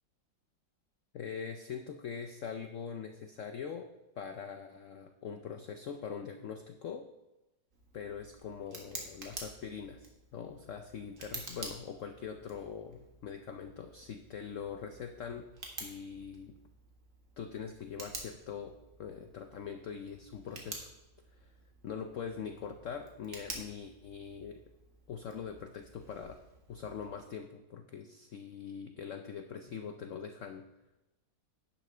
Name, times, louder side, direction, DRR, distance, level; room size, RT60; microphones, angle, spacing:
voice 1, 1.1-3.9 4.2-7.1 7.9-15.5 15.8-16.6 17.4-20.9 21.3-21.5 21.8-24.6 25.1-26.4 26.7-30.7, left 7 dB, 80° left, 7 dB, 0.6 m, -43 dB
Tick, 7.7-27.4, right 3 dB, 45° right, 1.8 m, -50 dB
11.5 x 10.0 x 3.3 m, 1.0 s
omnidirectional pair, 2.0 m